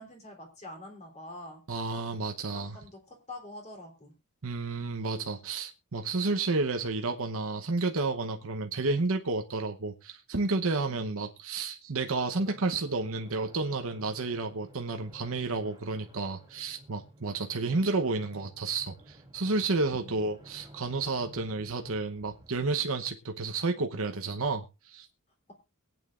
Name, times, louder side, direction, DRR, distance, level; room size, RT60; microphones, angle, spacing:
voice 1, 0.0-1.6 2.5-4.1 10.9-11.2 20.0-20.2, left 1 dB, 30° left, 3.4 m, -46 dB
voice 2, 1.7-2.8 4.4-25.1, right 3 dB, 70° right, 1.0 m, -31 dB
sound 1, 12.3-22.8, right 1 dB, 20° right, 2.7 m, -55 dB
22.5 x 9.0 x 2.5 m
head